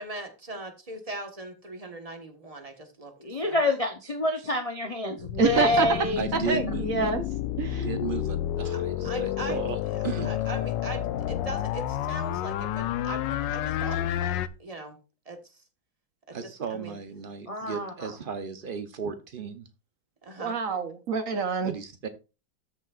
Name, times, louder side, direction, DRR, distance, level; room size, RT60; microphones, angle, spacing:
voice 1, 0.0-3.1 3.4-3.6 9.0-9.6 10.2-15.0 15.2-15.6 16.3-17.0 20.2-20.5, right 2 dB, 20° right, 5 dB, 1.3 m, -40 dB
voice 2, 3.2-6.2 17.5-18.1, left 2 dB, 50° left, 4 dB, 0.4 m, -27 dB
sound 1, 5.2-14.5, left 12 dB, 75° left, 1.2 m, -30 dB
voice 3, 5.4-5.9 6.3-7.2 7.6-7.9 20.4-21.7, right 5 dB, 55° right, 8 dB, 1.1 m, -27 dB
voice 4, 6.2-7.1 7.7-10.3 16.3-19.7 21.6-22.1, right 6 dB, 85° right, 8 dB, 0.4 m, -35 dB
13.5 x 6.4 x 2.4 m, 0.30 s
omnidirectional pair, 2.0 m